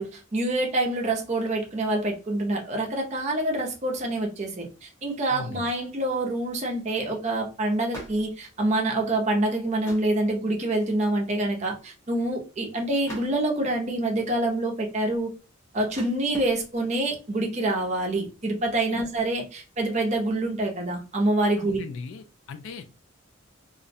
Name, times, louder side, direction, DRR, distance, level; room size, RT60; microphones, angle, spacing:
voice 1, 0.0-15.3 15.7-21.8, right 2 dB, 35° right, 0.5 m, -26 dB
sound 1, 4.7-4.8 6.1-6.5 6.8-6.9 7.2-7.4 7.8-9.1 9.6-10.3 10.7-11.1 11.4-11.5 11.6-12.5 13.1-13.8 14.4-17.2 17.7-18.1 18.3-19.4, equal, 15° left, 0.6 m, -46 dB
voice 2, 5.3-5.7 18.9-19.0 21.6-22.8, left 5 dB, 70° left, 0.3 m, -37 dB
2.4 x 2.0 x 2.6 m
head